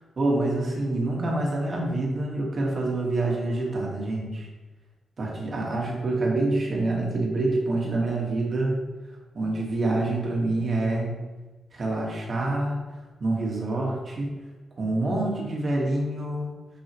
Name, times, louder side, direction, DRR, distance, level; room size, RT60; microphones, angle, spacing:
voice 1, 0.2-4.5 5.2-8.8 9.3-11.1 11.7-12.8 13.2-14.3 14.8-16.5, right 2 dB, 40° right, -2 dB, 1.6 m, -26 dB
6.3 x 5.6 x 3.1 m, 1.2 s
wide cardioid pair, 130°, 0 cm